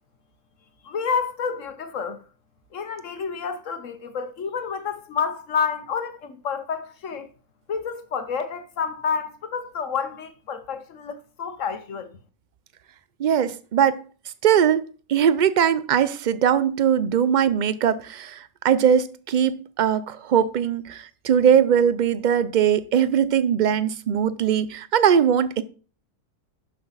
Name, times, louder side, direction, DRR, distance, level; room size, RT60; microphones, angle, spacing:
voice 1, 0.8-2.2 2.7-7.3 7.7-12.1, left 6 dB, 65° left, 1.3 m, -29 dB
voice 2, 13.2-14.0 14.4-14.8 15.1-25.6, right 8 dB, 65° right, 0.4 m, -20 dB
11.5 x 5.8 x 4.0 m
omnidirectional pair, 1.4 m